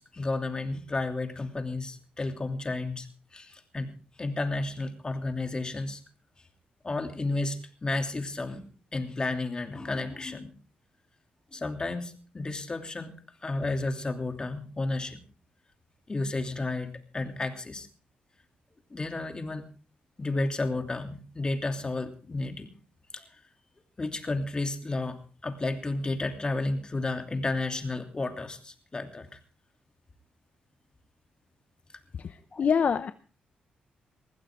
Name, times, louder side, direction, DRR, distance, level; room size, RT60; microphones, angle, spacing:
voice 1, 0.0-3.9 4.2-6.0 6.8-8.6 8.9-10.5 11.5-13.1 13.4-15.2 16.1-17.9 18.9-19.6 20.2-22.7 23.1-23.4 24.0-29.3 32.5-32.7, left 2 dB, 30° left, 5 dB, 2.9 m, -32 dB
voice 2, 32.2-33.1, left 6 dB, 50° left, 12 dB, 0.7 m, -26 dB
20.5 x 15.0 x 3.7 m, 0.38 s
cardioid pair, 90°, 3 cm